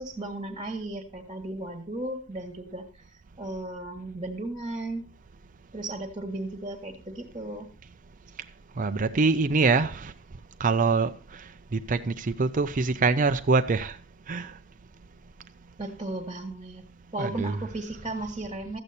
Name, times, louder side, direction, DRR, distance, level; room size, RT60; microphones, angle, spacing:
voice 1, 0.0-2.8 3.4-5.1 5.7-7.7 15.8-16.8 17.1-18.8, right 2 dB, 20° right, 1.5 m, -35 dB
voice 2, 8.8-10.1 10.6-11.1 11.7-13.9 14.3-14.5 17.2-17.6, right 4 dB, 40° right, 0.5 m, -24 dB
13.0 x 8.3 x 4.2 m
head